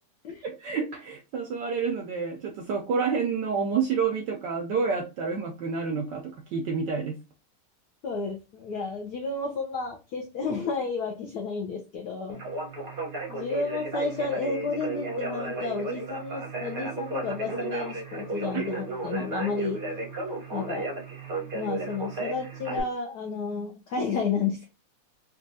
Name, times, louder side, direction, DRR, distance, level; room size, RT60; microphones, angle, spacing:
voice 1, 0.4-7.2 18.5-18.6, right 5 dB, 80° right, 2 dB, 1.0 m, -29 dB
voice 2, 8.0-12.4 13.3-19.8 20.5-20.9 21.5-24.7, left 4 dB, 80° left, 2 dB, 0.9 m, -31 dB
Conversation, 12.3-22.8, right 3 dB, 50° right, 0.6 m, -34 dB
4.1 x 2.3 x 2.6 m, 0.30 s
omnidirectional pair, 2.4 m